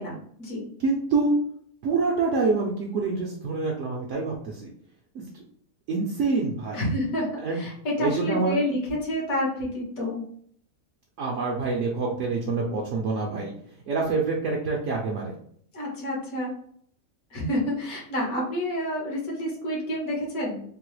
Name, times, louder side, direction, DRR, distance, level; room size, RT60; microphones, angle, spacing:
voice 1, 0.0-0.7 6.7-7.3 7.5-10.2 15.7-16.5 17.3-20.6, left 1 dB, 75° left, -3 dB, 1.6 m, -29 dB
voice 2, 0.8-1.3 1.8-4.7 5.1-5.2 5.9-6.8 7.4-7.6 8.0-8.6 11.2-13.5 13.9-15.3, right 3 dB, 65° right, -2 dB, 0.9 m, -26 dB
3.6 x 2.0 x 3.1 m, 0.63 s
omnidirectional pair, 1.5 m